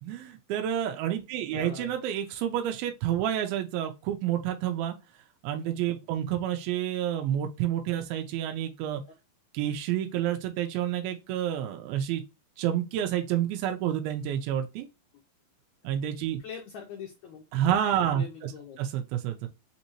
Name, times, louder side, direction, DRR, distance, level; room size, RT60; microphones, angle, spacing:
voice 1, 0.0-5.0 5.4-9.0 9.5-12.2 12.6-14.9 15.8-16.4 17.5-18.5 18.8-19.5, right 10 dB, 90° right, 2.5 m, -29 dB
voice 2, 1.5-1.9 16.4-17.4 18.1-18.8, left 6 dB, 80° left, 1.6 m, -42 dB
5.9 x 2.7 x 2.8 m
omnidirectional pair, 4.2 m